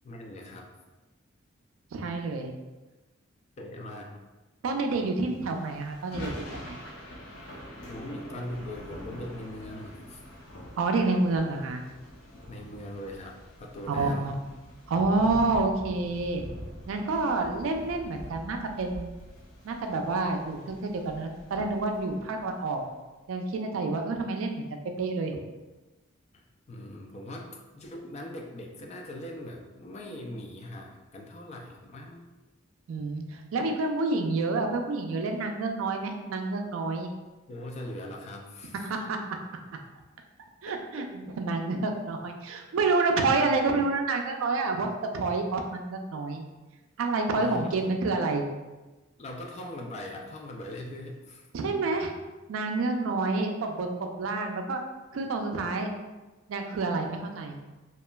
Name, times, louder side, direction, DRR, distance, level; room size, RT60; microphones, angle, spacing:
voice 1, 0.0-0.7 3.6-4.2 7.9-10.2 12.5-14.3 26.3-32.3 37.5-38.9 40.7-41.1 47.4-47.9 49.2-51.5 52.9-53.0, left 1 dB, 35° left, 1 dB, 0.3 m, -41 dB
voice 2, 1.9-2.5 4.6-6.8 10.8-11.8 13.9-14.3 14.9-16.4 16.9-19.1 19.6-22.8 23.3-25.4 32.9-37.1 38.8-39.2 40.6-46.4 47.0-48.5 51.5-52.1 52.5-54.8 55.1-55.9 56.5-57.6, right 3 dB, 80° right, 4 dB, 0.4 m, -28 dB
Thunder / Rain, 5.2-22.7, equal, 85° left, 0.6 m, -45 dB
2.9 x 2.4 x 2.2 m, 1.2 s
head